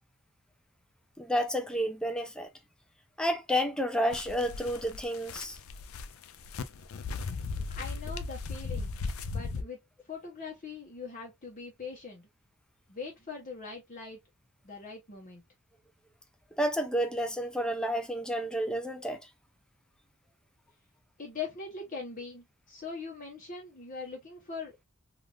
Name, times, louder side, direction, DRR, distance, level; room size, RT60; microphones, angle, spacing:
voice 1, 1.2-2.5 3.2-5.6 16.6-19.2, equal, 5° left, 0.5 m, -30 dB
sound 1, 4.1-9.6, left 4 dB, 75° left, 0.4 m, -37 dB
voice 2, 7.7-9.0 9.3-9.8 10.0-12.3 12.9-14.2 14.6-15.4 21.2-24.7, left 4 dB, 40° left, 0.9 m, -41 dB
3.3 x 2.5 x 2.3 m
head